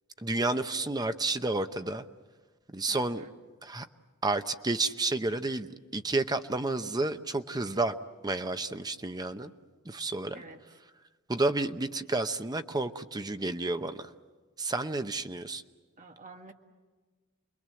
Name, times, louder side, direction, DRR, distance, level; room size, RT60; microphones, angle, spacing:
voice 1, 0.2-2.0 2.7-3.2 3.6-3.9 4.2-7.9 8.2-9.5 9.8-10.4 11.3-14.1 14.6-15.6, right 2 dB, 20° right, 9 dB, 0.8 m, -31 dB
voice 2, 2.9-3.3 10.3-10.8 16.0-16.5, right 3 dB, 35° right, 4 dB, 1.7 m, -50 dB
29.0 x 22.0 x 7.7 m, 1.4 s
head